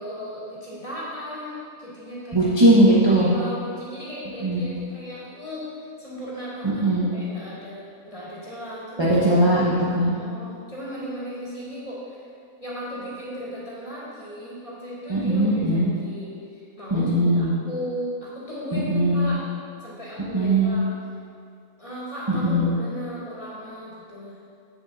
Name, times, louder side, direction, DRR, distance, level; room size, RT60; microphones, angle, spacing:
voice 1, 0.0-2.5 3.1-5.7 6.0-9.2 10.0-12.2 12.6-19.4 19.8-20.9 21.8-24.5, equal, 25° left, -8 dB, 2.3 m, -36 dB
voice 2, 2.3-3.3 4.4-4.6 6.6-7.0 9.0-10.1 15.1-15.9 16.9-17.5 18.7-19.3 20.3-20.8 22.3-22.7, right 1 dB, 20° right, -8 dB, 1.0 m, -19 dB
7.8 x 7.1 x 4.2 m, 2.3 s
omnidirectional pair, 1.5 m